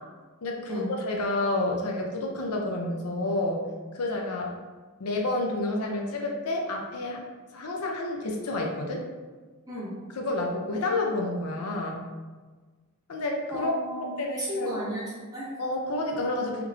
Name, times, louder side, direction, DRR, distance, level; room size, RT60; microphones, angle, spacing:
voice 1, 0.4-3.6 3.9-4.5 5.0-7.2 7.5-9.0 10.1-12.0 13.1-13.7 14.2-14.8 15.6-16.6, left 2 dB, 85° left, 0 dB, 0.5 m, -29 dB
voice 2, 13.5-14.1 14.4-15.6, right 1 dB, 15° right, -8 dB, 1.1 m, -33 dB
3.5 x 3.1 x 2.3 m, 1.4 s
head